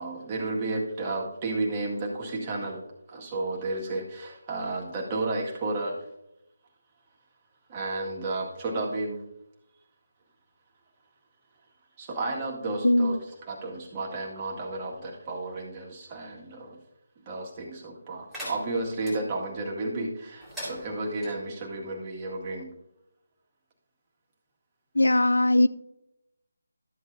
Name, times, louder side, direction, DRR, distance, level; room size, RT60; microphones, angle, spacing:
voice 1, 0.0-2.8 3.1-6.0 7.7-9.2 12.0-13.2 13.5-16.8 17.3-22.7, right 2 dB, 25° right, 1.8 m, -32 dB
voice 2, 12.8-13.2 24.9-25.7, left 1 dB, 90° left, 0.4 m, -20 dB
sound 1, 18.3-19.2 20.4-21.3, equal, ahead, 3.7 m, -40 dB
12.5 x 8.0 x 2.6 m
figure-of-eight pair, 160°, 0 cm